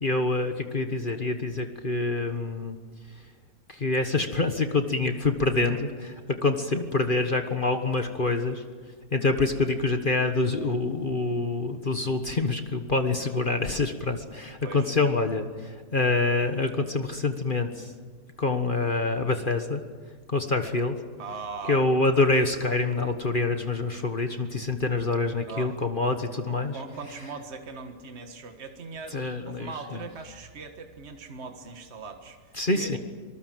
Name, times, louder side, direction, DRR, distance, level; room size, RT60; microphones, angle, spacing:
voice 1, 0.0-2.8 3.7-8.6 9.1-17.9 18.4-19.8 20.3-21.0 21.7-26.8 29.1-30.0 32.5-33.0, left 3 dB, 35° left, 6 dB, 1.4 m, -26 dB
voice 2, 5.6-5.9 14.6-14.9 21.2-21.8 25.5-25.7 26.7-33.0, right 4 dB, 45° right, 5 dB, 1.8 m, -40 dB
26.0 x 19.5 x 7.7 m, 1.5 s
omnidirectional pair, 1.6 m